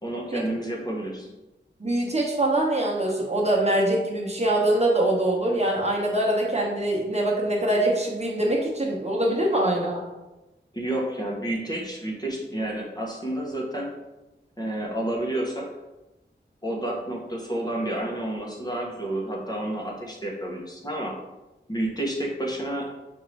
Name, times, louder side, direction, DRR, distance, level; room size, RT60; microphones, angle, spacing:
voice 1, 0.0-1.3 10.7-13.9 14.6-15.7 16.6-21.1 21.7-22.9, right 1 dB, 20° left, -2 dB, 0.9 m, -30 dB
voice 2, 1.8-10.0, right 1 dB, 35° right, -2 dB, 0.9 m, -23 dB
5.6 x 2.6 x 3.2 m, 1.0 s
wide cardioid pair, 65°, 19 cm